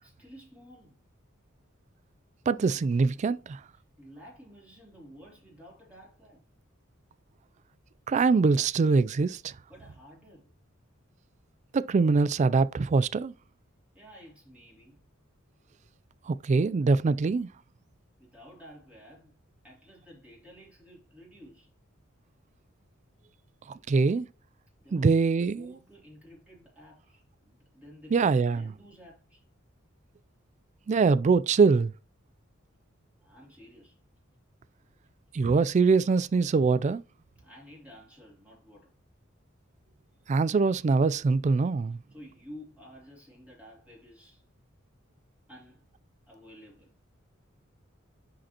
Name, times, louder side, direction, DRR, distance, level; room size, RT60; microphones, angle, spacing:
voice 1, 0.0-1.0 4.0-6.4 9.7-10.5 13.9-15.0 18.2-19.4 19.6-21.7 24.8-25.2 25.5-29.4 33.2-34.0 37.4-38.9 42.1-44.4 45.5-45.9 46.3-46.9, equal, 5° right, 2.8 m, -52 dB
voice 2, 2.5-3.6 8.1-9.5 11.7-13.3 16.3-17.5 23.9-24.3 24.9-25.7 28.1-28.7 30.9-31.9 35.3-37.0 40.3-42.0, right 4 dB, 35° right, 0.3 m, -23 dB
10.0 x 5.2 x 2.9 m
head